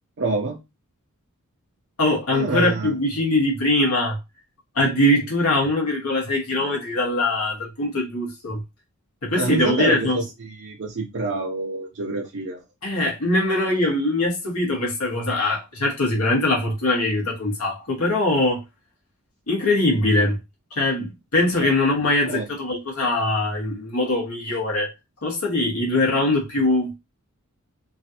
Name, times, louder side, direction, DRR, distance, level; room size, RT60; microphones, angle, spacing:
voice 1, 0.2-0.6 2.3-2.9 9.3-12.6 21.6-21.7 22.3-22.5, right 3 dB, 55° right, 0.5 m, -27 dB
voice 2, 2.0-4.2 4.7-8.6 9.2-10.2 12.8-18.6 19.5-20.4 20.7-24.9 25.2-26.9, left 2 dB, 85° left, 1.4 m, -22 dB
3.1 x 2.5 x 2.8 m
head